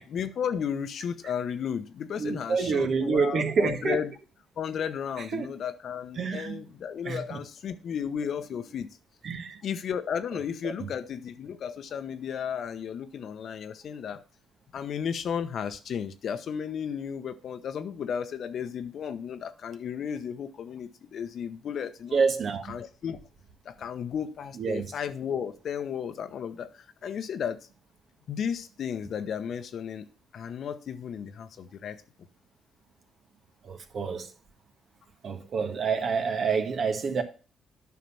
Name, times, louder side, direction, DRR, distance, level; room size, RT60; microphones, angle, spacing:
voice 1, 0.1-4.1 4.6-8.9 9.6-14.2 14.7-22.2 22.7-23.2 23.6-27.6 28.3-30.1 30.3-32.0, left 7 dB, 65° left, 0.9 m, -34 dB
voice 2, 2.2-4.0 5.2-5.5 6.2-6.6 7.0-7.4 9.2-9.6 10.6-10.9 22.1-22.8 24.6-24.9 33.6-34.3 35.2-37.2, right 5 dB, 55° right, 1.6 m, -28 dB
9.5 x 5.8 x 5.6 m
cardioid pair, 90°, 0 cm